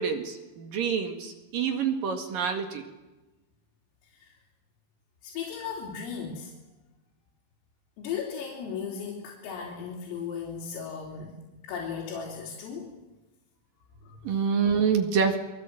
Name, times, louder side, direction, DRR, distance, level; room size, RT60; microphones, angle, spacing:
voice 1, 0.0-2.8 14.2-15.4, right 6 dB, 55° right, 5 dB, 2.9 m, -27 dB
voice 2, 5.2-6.5 8.0-11.3 11.6-12.9 14.0-14.2, left 6 dB, 85° left, -2 dB, 6.3 m, -36 dB
28.5 x 24.0 x 7.8 m, 1.1 s
omnidirectional pair, 5.8 m